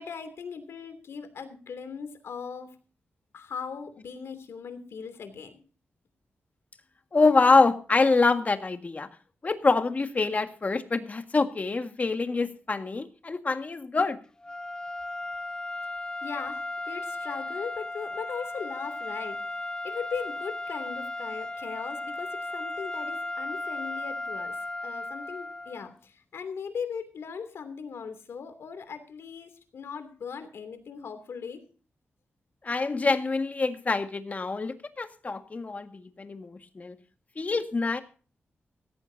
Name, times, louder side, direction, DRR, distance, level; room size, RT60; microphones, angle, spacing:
voice 1, 0.0-2.7 3.3-5.6 16.2-24.6 24.8-31.6, left 6 dB, 85° left, 9 dB, 2.9 m, -39 dB
voice 2, 7.1-9.1 9.4-14.2 32.6-37.0 37.4-38.0, left 3 dB, 35° left, 7 dB, 1.8 m, -25 dB
sound 1, 14.4-25.9, left 2 dB, 20° left, 0.8 m, -35 dB
17.0 x 15.0 x 2.8 m, 0.39 s
wide cardioid pair, 90°, 4 cm